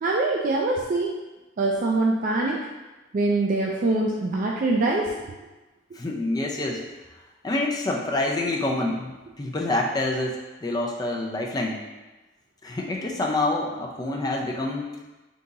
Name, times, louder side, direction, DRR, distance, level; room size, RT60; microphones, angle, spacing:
voice 1, 0.0-1.1 1.6-2.7 3.1-5.2, right 2 dB, 45° right, -2 dB, 0.4 m, -24 dB
voice 2, 5.9-6.8 7.4-11.9 12.6-14.9, left 2 dB, 20° left, -1 dB, 0.5 m, -27 dB
3.7 x 2.8 x 3.9 m, 1.1 s
head